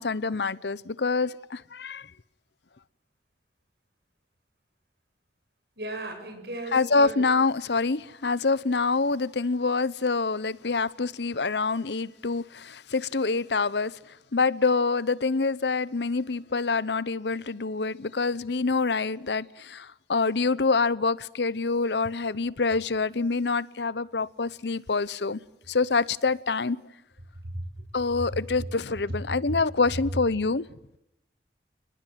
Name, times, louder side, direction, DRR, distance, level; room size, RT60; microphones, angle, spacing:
voice 1, 0.0-2.1 6.7-14.0 14.3-25.4 25.7-26.8 27.9-30.7, left 4 dB, 75° left, 0.8 m, -26 dB
voice 2, 5.8-7.2 27.5-27.6, right 1 dB, 65° right, 7.9 m, -36 dB
29.5 x 20.0 x 7.6 m
head